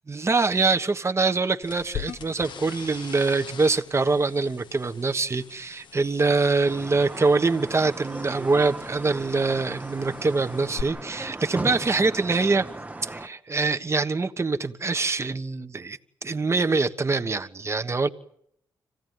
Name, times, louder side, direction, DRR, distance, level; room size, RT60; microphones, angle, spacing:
voice 1, 0.1-12.7 13.0-18.1, right 3 dB, 35° right, 1.3 m, -24 dB
sound 1, 1.6-10.8, left 8 dB, 70° left, 0.9 m, -42 dB
sound 2, 6.6-13.3, right 2 dB, 20° right, 1.0 m, -37 dB
26.0 x 16.5 x 9.5 m
cardioid pair, 60°, 8 cm